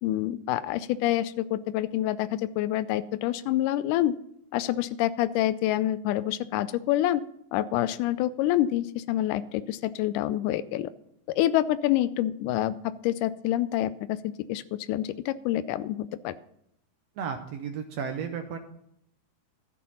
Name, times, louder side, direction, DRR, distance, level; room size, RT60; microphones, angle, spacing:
voice 1, 0.0-4.1 4.5-7.2 7.5-10.9 11.4-16.4, left 13 dB, 80° left, 14 dB, 2.0 m, -27 dB
voice 2, 17.2-18.6, right 7 dB, 75° right, 6 dB, 1.5 m, -33 dB
12.5 x 7.5 x 5.5 m, 0.73 s
omnidirectional pair, 3.9 m